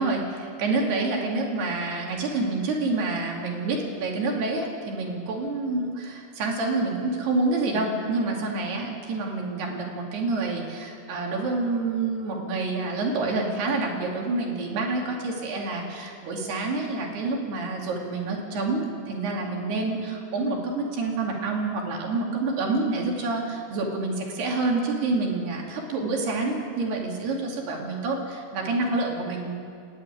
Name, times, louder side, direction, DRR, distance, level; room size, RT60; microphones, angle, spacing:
voice 1, 0.0-29.6, right 3 dB, 60° right, 0 dB, 4.4 m, -28 dB
30.0 x 11.0 x 9.3 m, 2.3 s
omnidirectional pair, 5.5 m